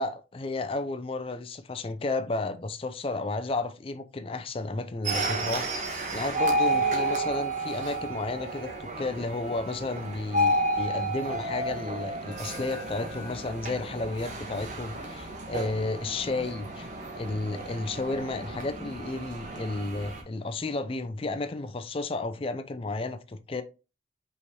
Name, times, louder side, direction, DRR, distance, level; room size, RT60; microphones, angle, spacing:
voice 1, 0.0-5.7 6.1-16.9 17.2-23.6, left 2 dB, 30° left, 0.4 m, -32 dB
sound 1, 5.0-20.2, right 1 dB, 40° right, 0.9 m, -31 dB
5.5 x 3.2 x 2.8 m
head